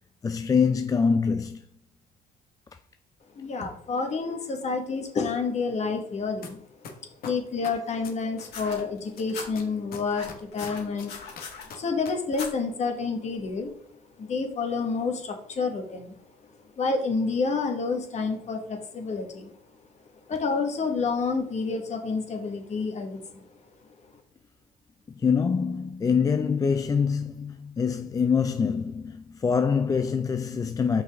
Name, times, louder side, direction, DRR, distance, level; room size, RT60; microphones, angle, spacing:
voice 1, 0.2-1.6 25.1-31.0, left 6 dB, 20° left, 0.3 m, -25 dB
voice 2, 3.3-6.6 7.2-11.1 11.7-13.7 14.2-16.2 16.8-19.5 20.3-23.5, left 4 dB, 40° left, 1.6 m, -29 dB
sound 1, 6.4-6.5 6.8-8.8 9.2-12.1 12.4-12.5, left 6 dB, 60° left, 1.4 m, -41 dB
sound 2, 8.5-9.5 10.1-11.7 12.3-12.5 13.5-13.6, left 5 dB, 75° left, 2.7 m, -39 dB
5.8 x 5.3 x 3.6 m
cardioid pair, 110°, 17 cm